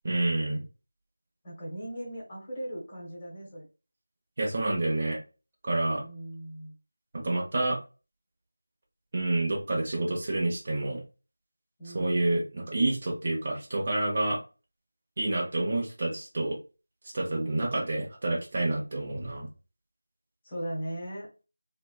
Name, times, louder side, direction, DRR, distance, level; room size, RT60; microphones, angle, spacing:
voice 1, 0.0-0.6 4.4-5.2 5.6-6.0 7.1-7.8 9.1-11.0 11.9-14.4 15.2-16.6 17.1-19.5, right 2 dB, 30° right, -1 dB, 0.8 m, -28 dB
voice 2, 1.4-3.7 6.0-6.8 11.8-12.2 17.3-17.7 20.4-21.3, right 1 dB, 15° left, -4 dB, 0.9 m, -38 dB
3.1 x 2.0 x 2.3 m, 0.32 s
figure-of-eight pair, 170°, 0 cm